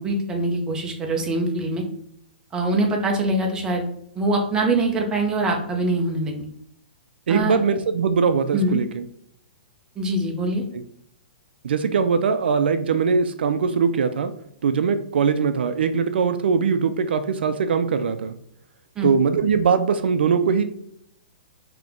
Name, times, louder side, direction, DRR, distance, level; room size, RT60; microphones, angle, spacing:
voice 1, 0.0-1.8 2.5-3.8 4.2-6.5 7.3-7.5 8.5-8.8 10.0-10.6 19.0-19.1, right 2 dB, 15° right, 1 dB, 0.7 m, -23 dB
voice 2, 7.3-9.0 10.7-10.8 11.6-14.3 14.6-18.3 19.0-20.6, right 6 dB, 75° right, 10 dB, 0.4 m, -21 dB
3.7 x 2.9 x 3.5 m, 0.69 s
hypercardioid pair, 150°, 6 cm